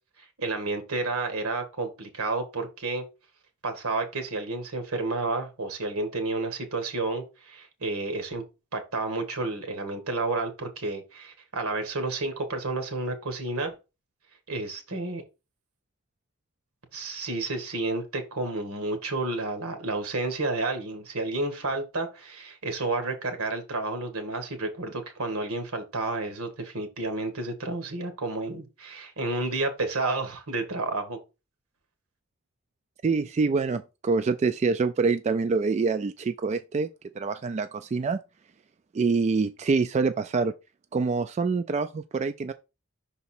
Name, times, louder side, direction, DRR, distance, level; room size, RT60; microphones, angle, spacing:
voice 1, 0.4-3.0 3.6-8.4 8.7-13.8 14.5-15.2 16.9-31.2, right 2 dB, 80° right, 1.6 m, -31 dB
voice 2, 33.0-36.9 37.2-38.2 38.9-40.5 40.9-42.5, right 4 dB, 30° right, 0.3 m, -25 dB
5.8 x 4.0 x 4.3 m
head